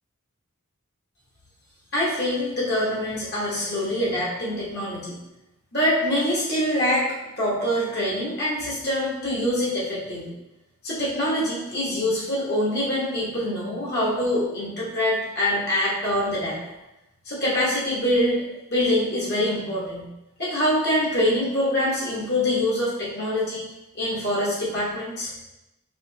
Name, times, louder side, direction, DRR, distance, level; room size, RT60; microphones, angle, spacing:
voice 1, 1.9-5.2 5.7-7.1 7.4-10.3 10.8-16.6 17.2-18.4 18.7-20.1 20.4-23.7 23.9-25.3, left 1 dB, 50° left, -5 dB, 1.1 m, -24 dB
4.9 x 3.0 x 2.8 m, 0.93 s
head